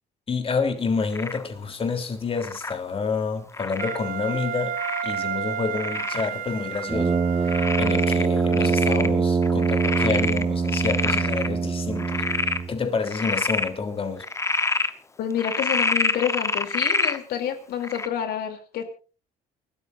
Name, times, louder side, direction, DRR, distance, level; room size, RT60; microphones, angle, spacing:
voice 1, 0.3-4.7 5.0-7.2 7.5-12.2 12.7-14.2, left 5 dB, 35° left, 3.4 m, -28 dB
Frog, 1.1-1.5 2.4-2.8 3.5-4.0 4.8-5.2 5.8-6.3 6.8-6.9 7.5-9.1 9.4-11.5 12.0-12.6 13.0-13.7 14.2-14.9 15.4-17.2 17.8-18.1, left 3 dB, 15° left, 1.0 m, -27 dB
Wind instrument woodwind instrument, 3.8-8.1, right 8 dB, 55° right, 1.0 m, -32 dB
Brass instrument, 6.9-12.8, right 5 dB, 25° right, 1.2 m, -23 dB
voice 2, 15.2-18.8, left 9 dB, 70° left, 3.1 m, -28 dB
29.5 x 13.5 x 2.6 m
cardioid pair, 110°, 17 cm